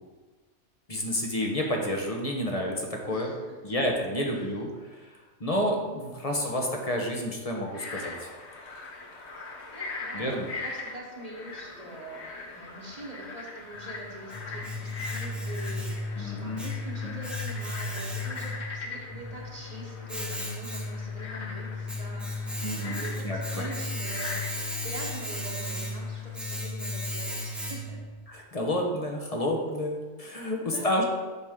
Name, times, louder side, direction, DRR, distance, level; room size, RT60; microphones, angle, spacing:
voice 1, 0.9-3.3 3.6-4.7 5.0-5.1 5.4-8.3 10.1-10.5 16.2-16.6 17.0-17.1 22.6-23.7 28.3-31.1, left 1 dB, 35° left, 1 dB, 1.1 m, -30 dB
voice 2, 3.1-3.8 4.3-4.6 9.4-24.5 24.8-28.1 30.5-31.1, right 1 dB, 35° right, -2 dB, 1.3 m, -44 dB
Frog, 7.6-26.4, left 3 dB, 65° left, 1.3 m, -41 dB
Domestic sounds home sounds, 13.8-28.1, left 2 dB, ahead, 0.7 m, -35 dB
8.0 x 6.0 x 3.7 m, 1.3 s
omnidirectional pair, 1.2 m